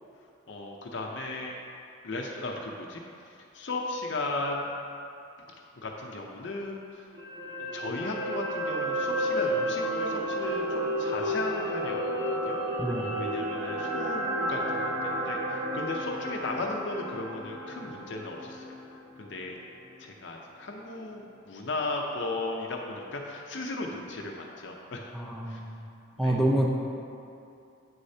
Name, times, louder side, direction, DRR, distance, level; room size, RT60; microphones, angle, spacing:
voice 1, 0.5-1.6 2.0-3.0 3.5-4.7 5.8-7.1 7.7-12.6 13.2-18.8 19.2-19.5 20.0-25.1 25.5-25.6 26.2-26.4, left 2 dB, 60° left, 0 dB, 0.6 m, -36 dB
sound 1, 7.1-19.4 19.8-19.9, equal, 50° right, 1.6 m, -32 dB
voice 2, 12.8-13.1 25.1-25.7 26.2-26.8, right 1 dB, ahead, -2 dB, 0.6 m, -27 dB
8.8 x 6.5 x 2.8 m, 2.6 s
head